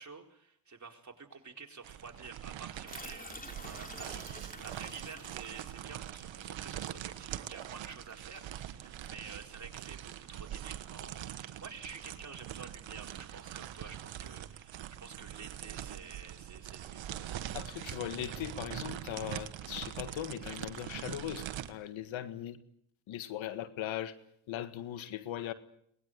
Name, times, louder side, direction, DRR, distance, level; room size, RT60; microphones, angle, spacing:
voice 1, 0.0-17.1, right 5 dB, 40° right, 2 dB, 4.6 m, -50 dB
sound 1, 1.8-21.7, right 11 dB, 75° right, 1.5 m, -43 dB
sound 2, 2.9-9.3, left 2 dB, 20° left, 3.5 m, -50 dB
voice 2, 17.5-22.6 23.1-24.1 24.5-25.5, left 11 dB, 85° left, 11 dB, 1.7 m, -39 dB
23.0 x 20.5 x 9.4 m, 0.72 s
supercardioid pair, 55°, 46 cm